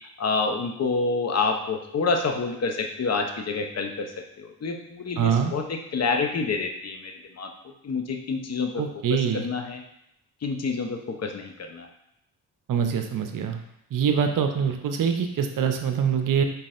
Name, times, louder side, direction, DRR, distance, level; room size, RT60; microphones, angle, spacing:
voice 1, 0.2-4.1 4.4-7.5 7.8-8.8 9.1-9.8 10.4-11.9, left 4 dB, 35° left, 4 dB, 0.7 m, -28 dB
voice 2, 5.2-5.5 8.7-9.5 12.7-13.6 13.9-16.4, right 7 dB, 50° right, 6 dB, 0.7 m, -24 dB
4.1 x 3.9 x 2.5 m, 0.79 s
supercardioid pair, 50°, 43 cm